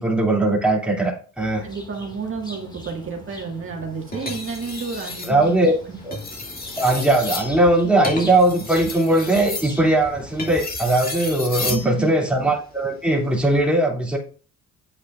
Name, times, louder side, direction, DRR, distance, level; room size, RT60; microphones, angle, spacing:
voice 1, 0.0-1.7 5.2-5.7 6.0-6.1 6.8-14.2, right 1 dB, 5° right, -2 dB, 2.7 m, -19 dB
sound 1, 1.4-10.5, left 1 dB, 15° left, 2.1 m, -42 dB
voice 2, 1.6-5.6 5.9-6.0 11.6-12.2, right 5 dB, 45° right, 0 dB, 1.9 m, -31 dB
sound 2, 4.1-5.3 6.0-11.9 13.3-13.6, left 3 dB, 30° left, 2.4 m, -32 dB
8.7 x 8.0 x 2.5 m, 0.40 s
cardioid pair, 90°, 30 cm